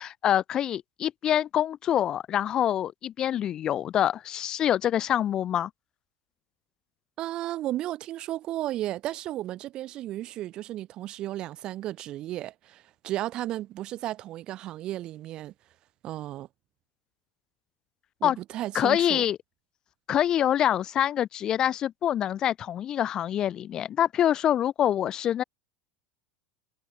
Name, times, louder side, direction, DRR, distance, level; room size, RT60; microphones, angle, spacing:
voice 1, 0.0-5.7 18.2-18.4 18.7-19.4 20.1-25.4, left 10 dB, 30° left, 0.5 m, -25 dB
voice 2, 7.2-15.5 16.0-16.5 18.2-19.2, right 14 dB, 35° right, 0.7 m, -34 dB
supercardioid pair, 140°, 2 cm